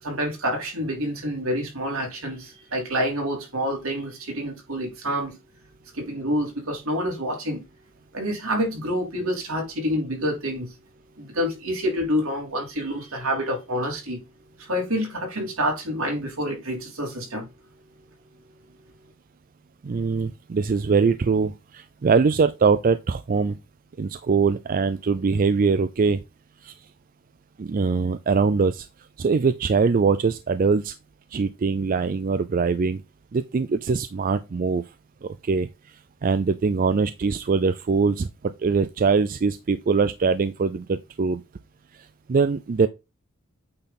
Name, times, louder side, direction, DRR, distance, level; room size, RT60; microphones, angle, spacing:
voice 1, 0.0-5.4 5.9-7.7 8.1-10.7 11.2-14.2 14.6-17.5, equal, 75° right, 3.4 m, -27 dB
voice 2, 19.8-23.6 24.0-26.2 26.6-26.7 27.6-28.9 29.2-30.9 31.3-33.0 33.3-34.8 35.2-35.7 36.2-38.3 38.6-41.4 42.3-42.9, right 5 dB, 40° right, 0.4 m, -22 dB
8.6 x 3.9 x 4.2 m
head